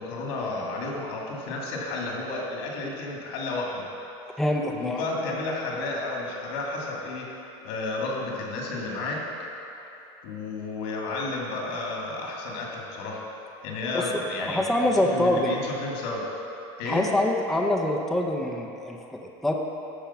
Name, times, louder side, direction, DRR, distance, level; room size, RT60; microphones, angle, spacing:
voice 1, 0.0-3.8 4.7-7.3 7.6-9.2 10.2-13.2 13.6-14.7 15.1-16.2 16.8-17.1, left 2 dB, 85° left, -2 dB, 2.4 m, -32 dB
voice 2, 4.4-5.0 13.9-14.0 14.4-15.6 16.9-19.5, left 1 dB, ahead, 0 dB, 0.5 m, -25 dB
13.0 x 5.2 x 5.7 m, 2.9 s
cardioid pair, 160°, 13 cm